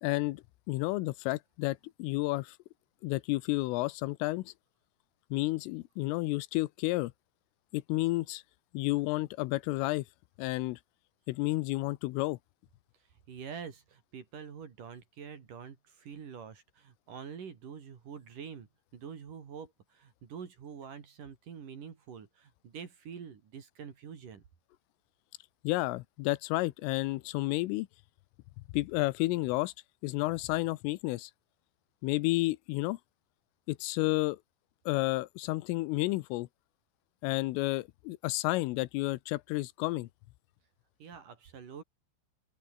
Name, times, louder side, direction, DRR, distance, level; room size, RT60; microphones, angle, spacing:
voice 1, 0.0-2.6 3.0-4.5 5.3-7.1 7.7-8.4 8.7-10.0 10.4-10.8 11.3-12.4 25.6-27.9 28.7-29.7 30.0-31.3 32.0-33.0 33.7-34.4 34.9-36.5 37.2-40.1, left 20 dB, 90° left, 3.4 m, -31 dB
voice 2, 13.3-24.4 41.0-41.8, right 7 dB, 50° right, 3.8 m, -46 dB
open air
omnidirectional pair, 5.7 m